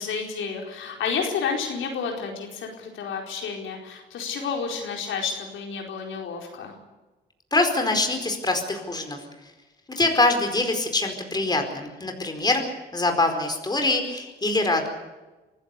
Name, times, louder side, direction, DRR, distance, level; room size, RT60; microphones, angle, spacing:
voice 1, 0.0-6.7, left 6 dB, 75° left, 1 dB, 4.6 m, -30 dB
voice 2, 7.5-9.2 9.9-12.7 12.9-14.9, left 2 dB, 20° left, 4 dB, 4.7 m, -24 dB
24.5 x 15.5 x 8.4 m, 1.1 s
cardioid pair, 90°, 20 cm